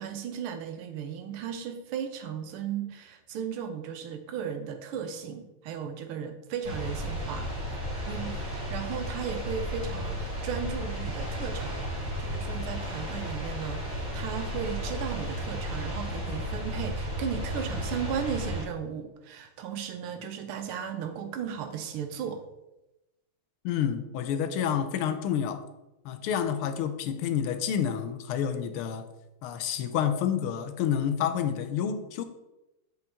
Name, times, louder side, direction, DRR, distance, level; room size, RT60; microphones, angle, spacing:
voice 1, 0.0-7.5 8.1-11.8 12.2-22.4, right 7 dB, 80° right, 7 dB, 1.7 m, -36 dB
sound 1, 6.6-18.6, equal, 35° right, 2.7 m, -33 dB
voice 2, 23.6-25.6 26.0-29.0 29.4-32.2, left 8 dB, 85° left, 9 dB, 1.6 m, -29 dB
7.9 x 5.8 x 3.5 m, 0.96 s
omnidirectional pair, 2.4 m